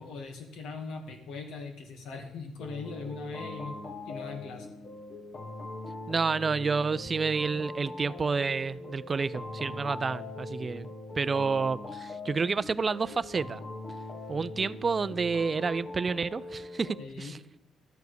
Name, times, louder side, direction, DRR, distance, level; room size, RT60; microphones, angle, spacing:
voice 1, 0.0-3.8 4.1-4.7 17.0-17.4, left 4 dB, 85° left, 2.1 m, -40 dB
sound 1, 2.6-17.1, left 2 dB, 50° left, 1.4 m, -41 dB
voice 2, 6.1-10.9 11.2-13.6 14.3-17.4, right 4 dB, 35° right, 0.4 m, -29 dB
12.5 x 4.7 x 8.1 m
cardioid pair, 90°, 0 cm